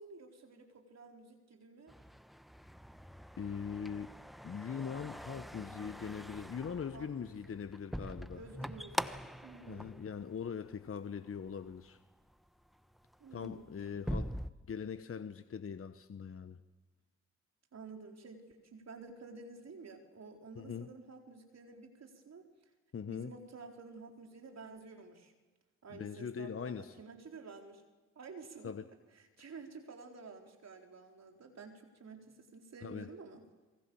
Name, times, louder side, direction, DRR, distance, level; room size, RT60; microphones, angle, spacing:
voice 1, 0.0-2.0 6.9-7.4 8.3-10.0 13.2-13.7 17.7-22.5 23.1-25.3 25.8-27.8 28.2-28.7 29.1-33.4, right 4 dB, 55° right, 2 dB, 4.4 m, -51 dB
sound 1, 1.9-10.9 11.3-11.8 12.3-12.5 12.8-14.5, equal, ahead, 1.1 m, -44 dB
voice 2, 3.4-4.1 4.4-8.4 9.7-12.0 13.3-14.4 14.7-16.6 20.6-20.9 22.9-23.3 25.9-26.9 28.6-28.8 32.8-33.1, left 7 dB, 45° left, 11 dB, 1.2 m, -41 dB
27.0 x 23.5 x 7.2 m, 1.2 s
hypercardioid pair, 40°, 32 cm